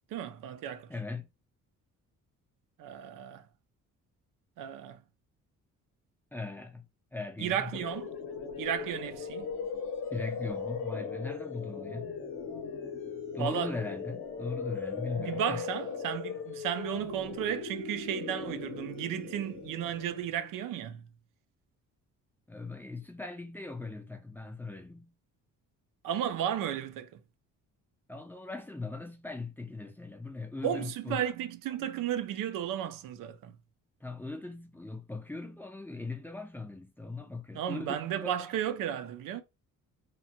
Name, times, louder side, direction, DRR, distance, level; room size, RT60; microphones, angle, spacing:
voice 1, 0.1-0.9 2.8-3.4 4.6-5.0 7.4-8.1 8.6-9.5 13.4-13.7 15.2-21.0 26.0-27.2 30.6-33.6 37.5-39.4, right 10 dB, 85° right, 0.5 m, -34 dB
voice 2, 0.9-1.3 6.3-6.9 7.1-7.9 10.1-12.2 13.3-15.7 22.5-25.1 28.1-31.2 34.0-38.0 38.2-38.3, left 3 dB, 5° left, 0.4 m, -39 dB
sound 1, 7.7-20.5, left 5 dB, 40° left, 0.7 m, -38 dB
2.9 x 2.2 x 2.8 m
cardioid pair, 145°, 32 cm